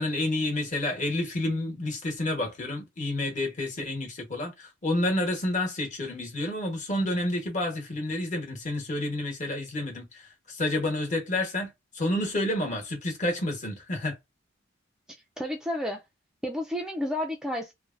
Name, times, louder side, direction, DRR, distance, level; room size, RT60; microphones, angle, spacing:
voice 1, 0.0-14.2, left 1 dB, 40° left, 1.2 m, -29 dB
voice 2, 15.4-16.0 16.4-17.7, left 1 dB, 5° right, 0.3 m, -31 dB
3.2 x 2.2 x 2.4 m
head